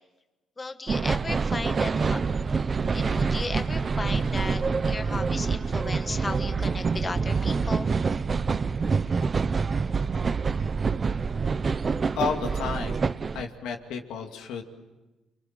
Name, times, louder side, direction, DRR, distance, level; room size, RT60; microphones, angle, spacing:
voice 1, 0.6-2.2 2.9-7.9, left 3 dB, 25° left, 8 dB, 1.4 m, -35 dB
sound 1, 0.9-13.4, right 5 dB, 40° right, 0.8 m, -26 dB
voice 2, 12.1-13.1 13.3-14.6, left 6 dB, 90° left, 3 dB, 2.5 m, -31 dB
29.5 x 23.5 x 7.5 m, 1.1 s
cardioid pair, 90°, 0 cm